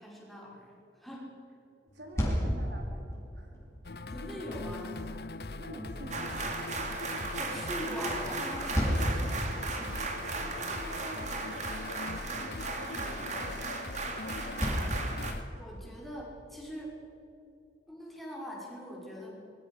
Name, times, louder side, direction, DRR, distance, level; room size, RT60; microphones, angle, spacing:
voice 1, 0.0-1.4 4.1-5.1 7.3-10.1 15.6-17.0 17.9-19.4, equal, ahead, -4 dB, 6.3 m, -42 dB
sound 1, 1.9-15.8, equal, 15° left, 6.3 m, -37 dB
voice 2, 1.9-3.7 5.6-7.1 10.3-14.2, right 1 dB, 75° right, 1 dB, 4.6 m, -48 dB
Video game music loop, 3.8-15.4, left 2 dB, 60° left, 1.0 m, -41 dB
sound 2, 6.1-15.3, right 3 dB, 40° right, 3.0 m, -37 dB
26.0 x 23.0 x 6.8 m, 2.8 s
head